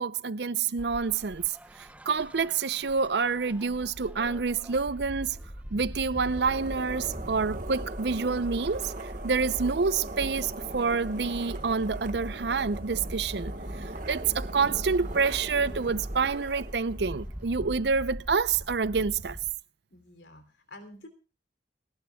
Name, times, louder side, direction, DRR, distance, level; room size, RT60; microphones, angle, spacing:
voice 1, 0.0-1.6 2.1-5.4 5.7-13.5 14.1-19.4, right 5 dB, 65° right, 0.6 m, -28 dB
sound 1, 0.8-19.5, equal, 10° right, 0.7 m, -41 dB
sound 2, 6.1-17.6, right 2 dB, 50° right, 1.4 m, -41 dB
voice 2, 19.9-21.1, left 1 dB, 80° left, 3.3 m, -49 dB
30.0 x 11.5 x 2.3 m
head